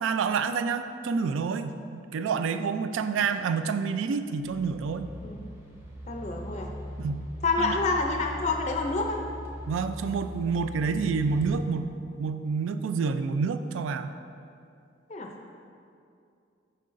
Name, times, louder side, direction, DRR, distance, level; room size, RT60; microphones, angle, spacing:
voice 1, 0.0-5.1 7.0-7.2 7.6-7.8 9.7-11.9 12.2-14.1, right 5 dB, 85° right, 10 dB, 0.3 m, -28 dB
sound 1, 3.2-3.4 4.3-12.3, equal, 10° right, 0.6 m, -41 dB
voice 2, 6.1-6.7 7.4-9.2 15.1-15.3, left 3 dB, 35° left, 2 dB, 0.4 m, -28 dB
7.6 x 5.6 x 2.5 m, 2.5 s
head